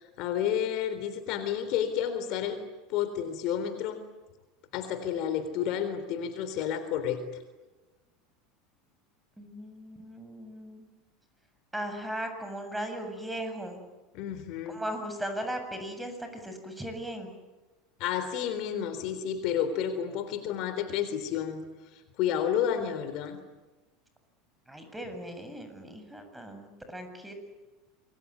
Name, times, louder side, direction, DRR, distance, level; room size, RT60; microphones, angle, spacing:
voice 1, 0.0-2.6 2.9-4.0 4.7-7.2 14.1-14.8 18.0-21.6 22.2-23.4, left 9 dB, 55° left, 10 dB, 3.8 m, -30 dB
voice 2, 9.4-10.9 11.7-13.8 14.7-17.3 24.7-27.3, right 1 dB, 5° right, 7 dB, 7.6 m, -37 dB
27.5 x 22.5 x 9.6 m, 1.1 s
hypercardioid pair, 80°, 0 cm